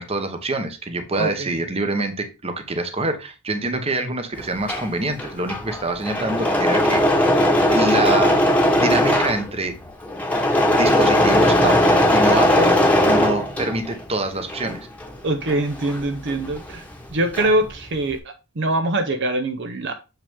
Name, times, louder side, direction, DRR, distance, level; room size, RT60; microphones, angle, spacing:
voice 1, 0.0-7.3 7.7-8.4 8.8-9.8 10.8-12.7 13.0-14.8, right 2 dB, 25° right, 7 dB, 1.0 m, -25 dB
voice 2, 1.1-1.5 15.2-16.8 17.1-19.9, right 1 dB, 55° right, 7 dB, 0.8 m, -23 dB
Engine / Mechanisms, 4.4-14.0 14.4-16.7 17.0-17.7, left 1 dB, 5° left, 1.2 m, -19 dB
7.1 x 5.7 x 3.5 m, 0.28 s
head